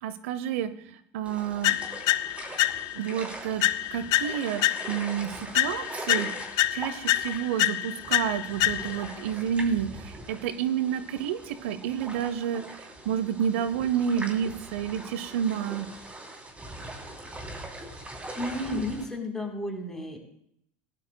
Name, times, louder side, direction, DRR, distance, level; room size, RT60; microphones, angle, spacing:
voice 1, 0.0-1.8 2.9-3.6 3.9-6.3 6.7-15.9, right 9 dB, 80° right, 13 dB, 0.7 m, -30 dB
sound 1, 1.2-19.1, right 1 dB, 20° right, 3.0 m, -42 dB
sound 2, 1.6-3.1 3.6-5.2 5.5-9.1, left 15 dB, 60° left, 0.4 m, -27 dB
voice 2, 18.4-20.2, left 1 dB, 5° left, 0 dB, 3.7 m, -32 dB
17.0 x 11.5 x 2.2 m, 0.72 s
supercardioid pair, 95°, 7 cm